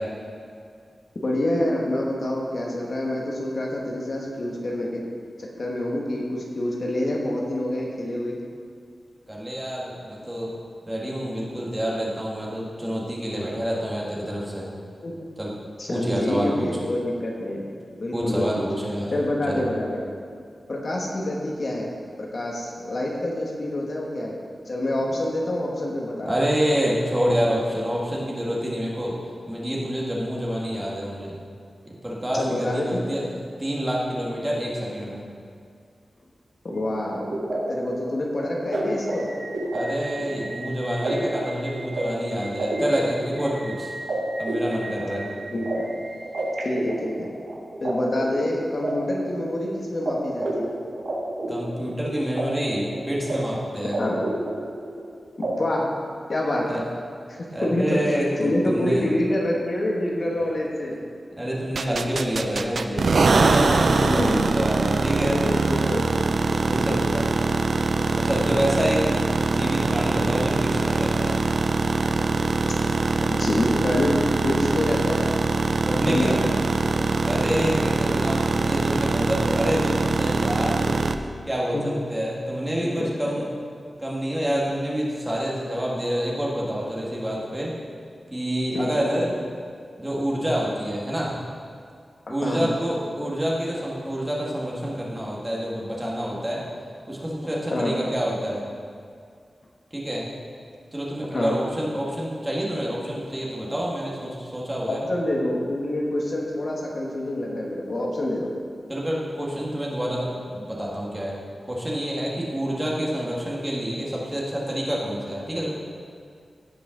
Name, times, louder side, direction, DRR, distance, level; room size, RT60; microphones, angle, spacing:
voice 1, 1.2-5.0 5.4-8.4 15.0-15.1 15.8-17.6 18.0-18.6 19.1-20.0 20.7-21.9 22.2-24.4 24.7-26.4 32.3-33.0 36.6-39.3 45.5-45.8 46.6-47.3 47.8-50.7 53.8-54.2 55.4-55.9 56.3-56.8 57.3-58.0 58.4-61.0 64.0-64.5 65.2-67.0 73.3-75.3 76.0-76.4 81.7-81.8 83.0-83.3 88.7-89.0 92.3-92.7 97.7-97.9 101.2-101.6 104.9-108.5, left 1 dB, 50° left, -2 dB, 1.3 m, -27 dB
voice 2, 9.3-10.5 10.9-14.7 15.4-15.5 15.9-16.7 18.1-19.1 19.5-19.6 26.3-29.2 29.5-31.4 31.9-33.3 33.6-35.3 39.7-43.9 44.4-45.3 51.5-54.0 56.7-56.8 57.5-59.1 60.4-60.5 61.4-65.4 66.7-67.3 68.1-71.4 75.8-76.5 77.2-81.0 81.5-83.5 84.0-87.7 88.3-89.4 90.0-91.4 92.3-96.6 97.1-98.7 99.9-100.3 100.9-105.0 108.9-111.4 111.7-115.7, equal, 15° right, -4 dB, 1.7 m, -27 dB
sound 1, 36.8-47.9 48.2-49.7 50.1-50.2 50.4-52.4 52.7-53.4 53.6-55.0 55.4-55.5, right 1 dB, 85° right, 2.1 m, -30 dB
sound 2, 61.8-81.2, right 3 dB, 60° right, 0.4 m, -23 dB
16.5 x 5.7 x 3.8 m, 2.2 s
wide cardioid pair, 140°, 0 cm